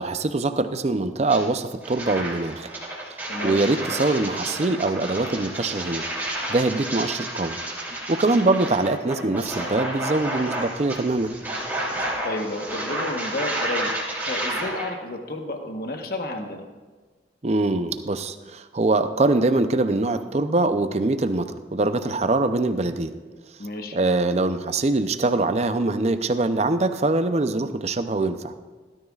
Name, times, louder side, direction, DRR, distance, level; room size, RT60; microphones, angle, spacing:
voice 1, 0.0-2.7 3.4-6.0 6.5-7.6 8.1-11.3 17.4-23.1 23.9-28.5, right 2 dB, 35° right, 10 dB, 0.5 m, -23 dB
sound 1, 1.3-1.4 1.8-14.9, right 1 dB, 10° right, 2.8 m, -31 dB
voice 2, 3.3-3.6 8.3-8.5 12.2-13.9 14.3-16.6 23.6-24.0 27.6-27.7, left 2 dB, 55° left, 4 dB, 1.1 m, -31 dB
17.0 x 13.0 x 2.4 m, 1.3 s
head